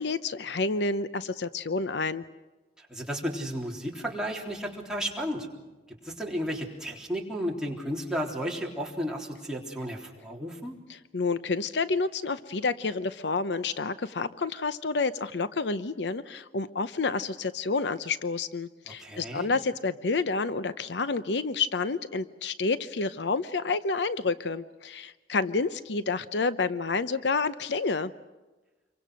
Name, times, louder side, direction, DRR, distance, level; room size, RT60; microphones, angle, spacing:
voice 1, 0.0-2.2 11.1-28.1, left 4 dB, 75° left, 13 dB, 0.7 m, -29 dB
voice 2, 2.8-5.5 6.0-10.8 18.9-19.5, equal, 5° right, -2 dB, 3.6 m, -33 dB
27.5 x 23.5 x 6.4 m, 1.2 s
head